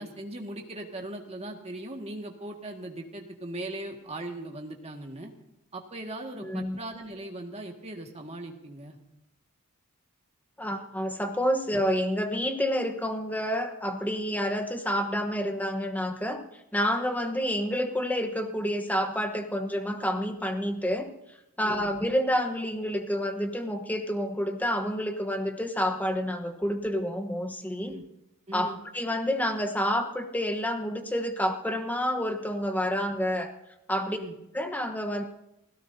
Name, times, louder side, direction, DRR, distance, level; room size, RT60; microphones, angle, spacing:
voice 1, 0.0-5.3 5.7-9.0 21.6-21.9 27.8-28.0 28.5-28.8 34.1-34.4, right 1 dB, 30° right, 2 dB, 1.8 m, -39 dB
voice 2, 6.4-6.8 10.6-16.4 16.7-21.1 21.6-28.0 28.5-33.5 33.9-34.2 34.5-35.2, equal, 5° left, 6 dB, 1.1 m, -29 dB
30.0 x 16.5 x 2.7 m, 0.91 s
head